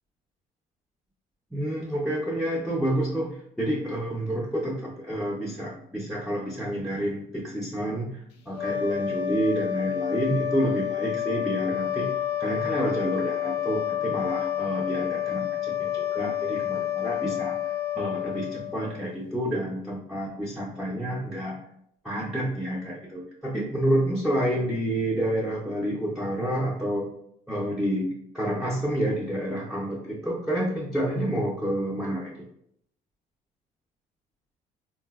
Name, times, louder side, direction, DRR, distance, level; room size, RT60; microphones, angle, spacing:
voice 1, 1.5-12.1 12.4-21.6 22.0-27.1 27.5-32.5, right 1 dB, ahead, -4 dB, 0.4 m, -29 dB
sound 1, 8.5-19.1, left 11 dB, 80° left, 0.4 m, -29 dB
3.7 x 2.0 x 2.2 m, 0.73 s
cardioid pair, 110°, 17 cm